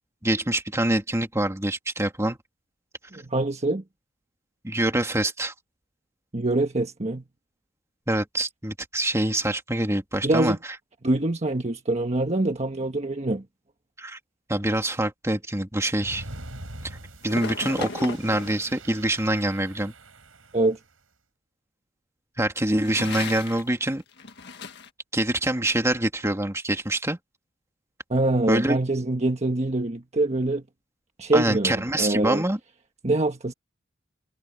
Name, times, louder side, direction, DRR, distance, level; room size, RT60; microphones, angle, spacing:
voice 1, 0.2-2.4 4.6-5.5 8.1-10.6 14.0-14.2 14.5-16.2 16.8-17.0 17.2-19.9 22.4-24.0 25.1-27.2 28.5-28.8 31.3-32.6, right 1 dB, 15° right, 2.4 m, -25 dB
voice 2, 3.1-3.8 6.3-7.2 10.2-10.6 11.0-13.4 20.5-20.8 28.1-30.6 31.2-32.4 33.0-33.5, right 2 dB, 35° right, 1.4 m, -24 dB
sound 1, 15.9-20.8, right 1 dB, 85° right, 7.0 m, -43 dB
sound 2, 17.2-18.8 22.7-23.7 24.0-24.9, left 4 dB, 60° left, 1.7 m, -36 dB
head